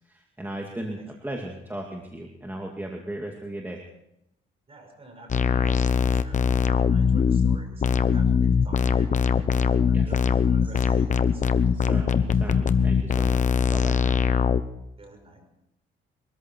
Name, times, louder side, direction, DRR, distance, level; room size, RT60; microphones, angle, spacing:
voice 1, 0.1-3.8 9.9-10.0 11.7-14.2, right 1 dB, 10° right, 0 dB, 2.3 m, -36 dB
voice 2, 4.7-9.2 9.6-11.6 15.0-15.5, right 2 dB, 30° right, 4 dB, 5.6 m, -48 dB
sound 1, 5.3-14.6, left 6 dB, 40° left, 0.9 m, -21 dB
22.5 x 14.0 x 4.6 m, 0.80 s
cardioid pair, 90°, 20 cm